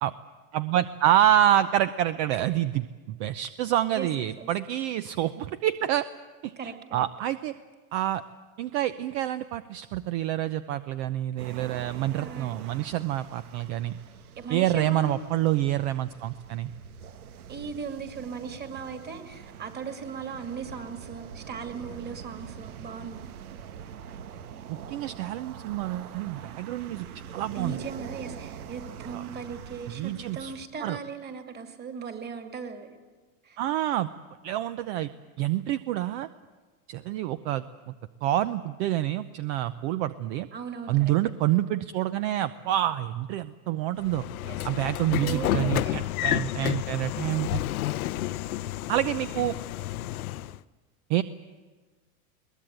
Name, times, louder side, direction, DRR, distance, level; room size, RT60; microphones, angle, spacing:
voice 1, 0.5-6.0 6.4-7.5 7.9-8.2 8.6-14.0 14.5-16.7 24.9-27.1 27.3-27.8 29.1-29.2 29.9-30.5 30.8-31.0 33.6-34.1 34.4-35.1 35.4-36.3 36.9-37.9 38.2-40.5 40.9-44.3 44.6-47.6 48.9-49.6 51.1-51.2, right 13 dB, 50° right, 13 dB, 0.8 m, -27 dB
voice 2, 3.9-4.5 6.6-7.1 12.2-12.5 14.4-15.2 17.5-23.2 27.5-32.9 33.4-33.6 40.5-41.1 44.4-44.8 45.2-46.1, right 5 dB, 25° right, 6 dB, 2.5 m, -38 dB
sound 1, 11.4-30.7, right 8 dB, 90° right, 1.4 m, -44 dB
Train / Sliding door, 44.0-50.6, left 15 dB, 80° left, 0.8 m, -30 dB
22.0 x 19.5 x 9.0 m, 1.3 s
supercardioid pair, 135°, 43 cm